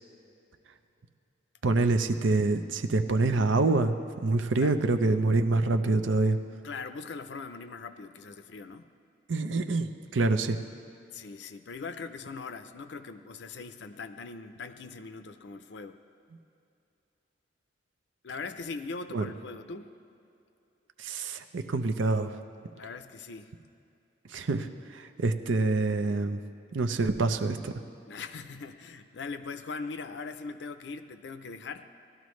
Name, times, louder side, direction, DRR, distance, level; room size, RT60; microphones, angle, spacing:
voice 1, 1.6-3.9 4.2-6.4 9.3-10.6 19.1-19.3 21.0-22.3 24.3-26.4 26.7-27.7, right 3 dB, 85° right, 8 dB, 0.6 m, -26 dB
voice 2, 6.6-8.9 11.1-16.0 18.2-19.9 22.7-23.5 28.1-31.9, left 4 dB, 70° left, 10 dB, 0.5 m, -40 dB
18.5 x 12.5 x 3.2 m, 2.6 s
head